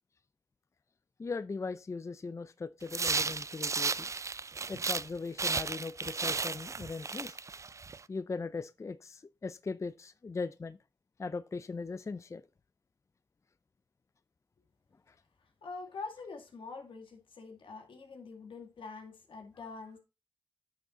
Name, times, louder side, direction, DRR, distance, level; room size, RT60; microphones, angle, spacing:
voice 1, 1.2-4.1 4.7-7.4 8.1-10.8 11.2-12.4, left 4 dB, 35° left, 0.4 m, -39 dB
sound 1, 2.9-5.1 5.4-8.0, right 4 dB, 35° right, 0.4 m, -34 dB
voice 2, 15.6-20.0, left 4 dB, 80° left, 2.1 m, -45 dB
9.5 x 6.1 x 3.7 m
cardioid pair, 60°, 9 cm